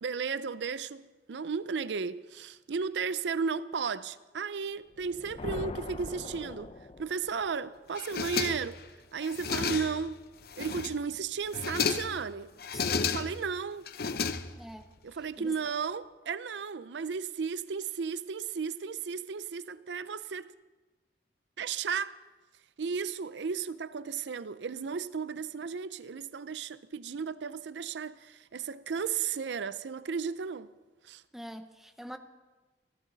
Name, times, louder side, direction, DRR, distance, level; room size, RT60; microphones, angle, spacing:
voice 1, 0.0-6.7 7.0-8.8 9.1-10.2 10.6-12.5 13.0-13.9 15.0-20.5 21.6-22.2 22.8-30.7 31.0-31.2, right 5 dB, 80° right, 0.5 m, -34 dB
sound 1, 4.9-7.5, left 2 dB, 30° left, 0.5 m, -41 dB
sound 2, 8.0-8.8 9.2-10.1 10.5-11.1 11.5-12.2 12.6-13.5 13.9-14.8, left 5 dB, 60° left, 0.8 m, -32 dB
voice 2, 12.7-13.2 14.6-14.9 15.4-15.5 31.3-32.2, equal, ahead, 0.8 m, -44 dB
29.5 x 12.0 x 4.0 m
head